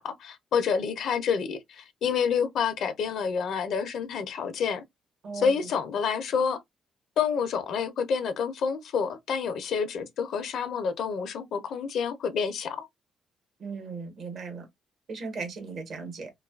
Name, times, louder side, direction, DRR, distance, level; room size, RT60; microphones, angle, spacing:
voice 1, 0.0-4.8 5.3-6.6 7.2-12.9, left 6 dB, 70° left, 0.5 m, -28 dB
voice 2, 5.2-5.7 13.6-14.7 15.1-16.3, right 4 dB, 60° right, 1.0 m, -37 dB
2.6 x 2.3 x 2.3 m
cardioid pair, 90°, 0 cm